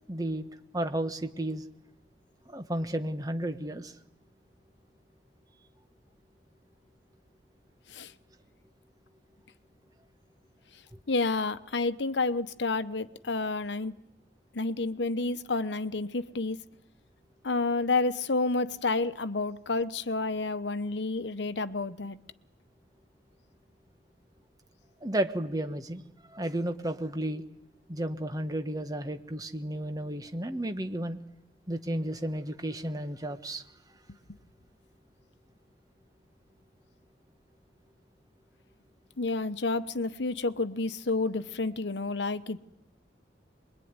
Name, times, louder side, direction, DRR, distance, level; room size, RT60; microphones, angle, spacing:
voice 1, 0.1-0.5 0.7-1.6 2.5-3.9 25.0-26.0 26.3-27.4 27.9-31.2 31.7-33.6, right 1 dB, 20° right, 1.4 m, -32 dB
voice 2, 11.1-13.9 14.5-16.6 17.4-22.2 39.2-42.6, left 3 dB, 75° left, 1.0 m, -30 dB
24.0 x 22.0 x 9.7 m
head